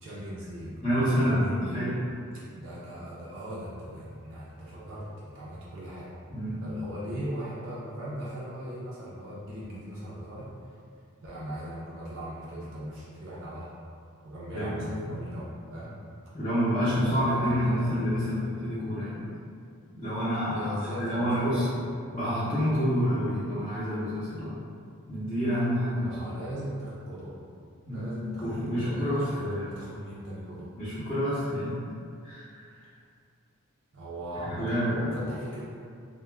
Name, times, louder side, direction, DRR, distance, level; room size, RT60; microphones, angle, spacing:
voice 1, 0.0-1.8 2.5-6.1 6.6-10.5 11.2-13.7 14.2-15.9 16.8-18.4 20.5-21.9 26.0-27.3 27.9-30.7 33.9-35.6, equal, 55° right, -8 dB, 0.4 m, -39 dB
voice 2, 0.8-2.0 6.3-6.6 14.5-15.1 16.3-19.3 20.0-21.7 22.1-24.5 25.1-26.2 27.9-28.1 28.4-29.7 30.7-31.8 32.2-32.6 34.4-35.2, equal, 20° left, -14 dB, 0.6 m, -28 dB
2.3 x 2.1 x 3.1 m, 2.3 s
head